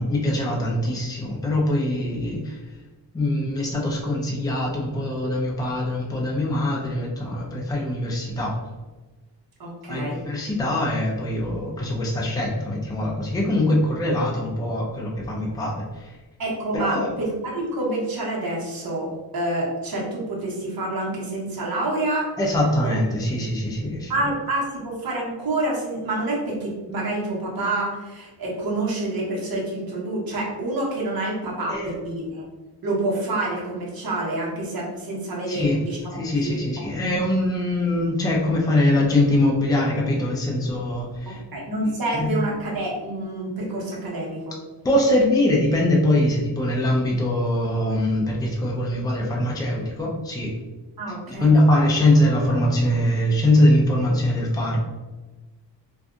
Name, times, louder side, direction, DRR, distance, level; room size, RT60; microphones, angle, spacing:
voice 1, 0.0-2.6 3.1-8.6 9.9-16.2 16.7-17.2 22.4-24.1 31.7-31.9 35.5-35.8 36.1-41.4 41.8-42.3 44.8-50.5 51.3-54.8, left 1 dB, 10° left, -2 dB, 0.5 m, -22 dB
voice 2, 9.6-10.2 16.4-22.3 22.8-22.9 24.1-32.4 32.8-36.6 41.3-44.6 51.0-51.7, right 2 dB, 50° right, -4 dB, 1.1 m, -28 dB
2.6 x 2.3 x 3.6 m, 1.2 s
wide cardioid pair, 110°, 44 cm